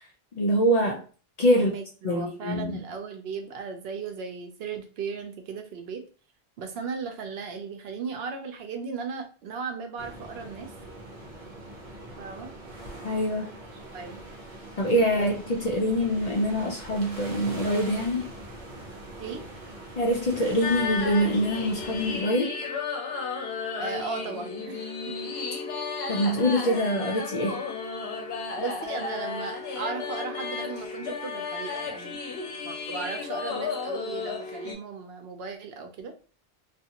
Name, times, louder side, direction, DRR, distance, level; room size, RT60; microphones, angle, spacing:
voice 1, 0.3-1.0 1.4-1.7 2.0-2.8 13.0-13.5 14.8-18.3 20.0-22.5 26.1-27.6, equal, 50° left, 0 dB, 0.5 m, -24 dB
voice 2, 1.5-6.0 6.6-10.7 12.2-12.5 13.9-14.2 15.1-15.3 19.2-19.4 23.8-25.3 28.6-32.2 32.6-36.1, right 5 dB, 75° right, 5 dB, 0.8 m, -36 dB
sound 1, 10.0-22.2, right 1 dB, 50° right, 0.9 m, -42 dB
sound 2, 20.6-34.7, left 4 dB, 75° left, 0.9 m, -33 dB
2.4 x 2.4 x 2.8 m, 0.37 s
omnidirectional pair, 1.0 m